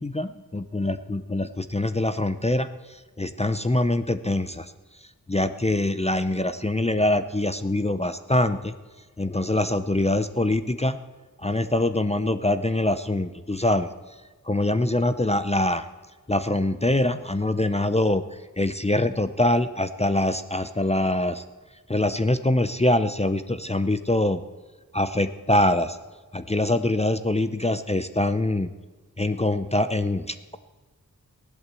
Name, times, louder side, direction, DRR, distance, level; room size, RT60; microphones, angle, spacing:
voice 1, 0.0-2.7 3.2-4.7 5.3-8.7 9.2-11.0 11.4-13.9 14.5-15.8 16.3-18.2 18.6-21.4 21.9-24.4 24.9-26.0 26.3-28.7 29.2-30.6, left 1 dB, 20° left, 10 dB, 0.6 m, -24 dB
16.0 x 11.5 x 7.6 m, 1.3 s
wide cardioid pair, 50°, 36 cm